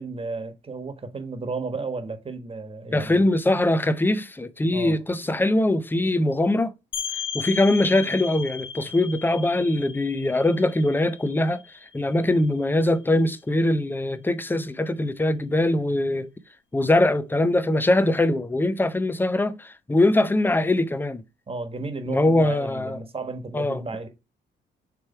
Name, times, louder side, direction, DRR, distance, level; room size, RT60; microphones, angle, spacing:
voice 1, 0.0-3.2 4.7-5.0 21.5-24.1, right 3 dB, 30° right, 1.5 m, -33 dB
voice 2, 2.9-6.7 7.3-11.6 11.9-16.3 16.7-21.2 22.1-23.0 23.5-23.8, left 1 dB, 10° left, 0.6 m, -22 dB
sound 1, 6.9-12.4, left 7 dB, 75° left, 1.0 m, -35 dB
6.8 x 3.3 x 4.3 m
cardioid pair, 90°, 20 cm